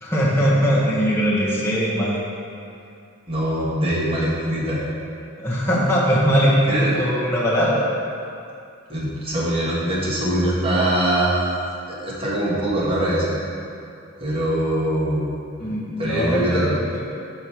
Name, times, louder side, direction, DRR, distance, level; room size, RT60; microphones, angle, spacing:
voice 1, 0.0-2.2 5.4-7.9 15.6-17.0, equal, 10° left, -7 dB, 1.0 m, -20 dB
voice 2, 3.3-4.8 6.7-6.9 8.9-13.3 14.2-15.3 16.0-16.7, right 1 dB, 25° right, -8 dB, 1.4 m, -23 dB
5.8 x 5.2 x 4.5 m, 2.5 s
head